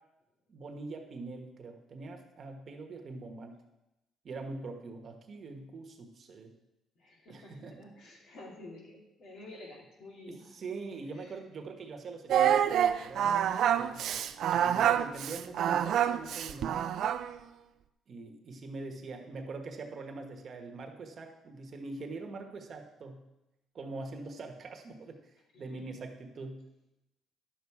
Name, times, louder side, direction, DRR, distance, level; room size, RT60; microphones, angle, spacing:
voice 1, 0.5-3.5 4.2-6.5 7.3-7.8 10.3-14.2 14.5-16.8 18.1-23.2 23.7-25.2 25.6-26.6, right 3 dB, 40° right, 3 dB, 1.2 m, -43 dB
voice 2, 7.0-10.5 11.1-11.3 25.5-25.8, left 2 dB, 65° left, -2 dB, 2.9 m, -50 dB
Singing, 12.3-17.4, right 9 dB, 65° right, 0.4 m, -27 dB
10.5 x 7.1 x 4.8 m, 0.94 s
cardioid pair, 130°, 0 cm